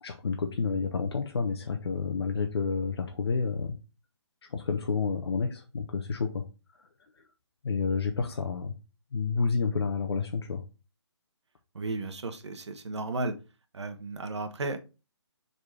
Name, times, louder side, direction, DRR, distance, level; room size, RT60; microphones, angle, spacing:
voice 1, 0.0-3.8 4.5-6.4 6.8-6.9 7.6-8.7 9.1-10.6, left 5 dB, 60° left, 3 dB, 0.9 m, -30 dB
voice 2, 11.7-13.3 13.7-14.8, right 3 dB, 70° right, 6 dB, 1.3 m, -34 dB
5.0 x 4.2 x 4.8 m, 0.31 s
hypercardioid pair, 160°, 15 cm